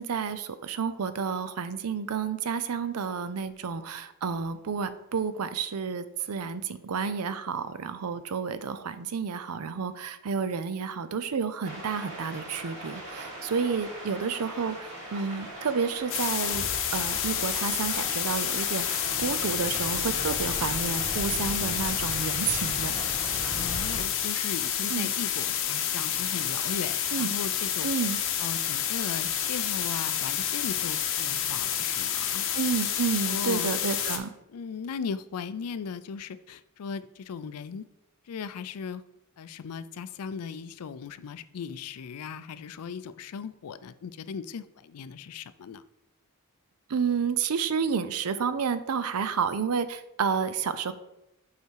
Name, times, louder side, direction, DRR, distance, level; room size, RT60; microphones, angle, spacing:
voice 1, 0.0-23.0 24.9-25.1 27.1-27.3 27.8-28.2 32.5-34.3 46.9-50.9, right 6 dB, 80° right, 13 dB, 0.5 m, -30 dB
sound 1, 11.6-24.0, right 1 dB, 55° right, 2.6 m, -39 dB
sound 2, 16.1-34.2, left 9 dB, 60° left, 0.7 m, -29 dB
sound 3, 16.5-23.9, equal, 20° right, 1.9 m, -49 dB
voice 2, 23.5-27.9 28.4-32.5 33.3-33.8 34.5-37.8 38.3-39.0 39.4-45.8, left 6 dB, 80° left, 14 dB, 0.4 m, -37 dB
5.5 x 5.0 x 4.6 m, 0.87 s
head